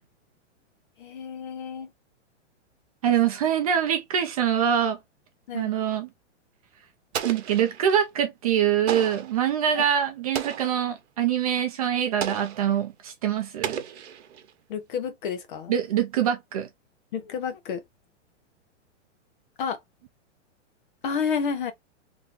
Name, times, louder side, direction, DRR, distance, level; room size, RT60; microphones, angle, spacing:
voice 1, 1.0-1.9 5.5-5.7 9.7-9.8 14.7-15.7 17.1-17.8 19.6-19.8 21.0-21.7, left 6 dB, 45° left, 1.0 m, -30 dB
voice 2, 3.0-5.0 5.5-6.1 7.2-13.8 15.7-16.7, right 9 dB, 30° right, 0.5 m, -24 dB
Explosion, 7.1-8.0 8.9-9.4 10.3-10.9 12.2-12.7 13.6-14.5, right 9 dB, 60° right, 0.9 m, -33 dB
3.1 x 2.5 x 3.7 m
hypercardioid pair, 165°, 36 cm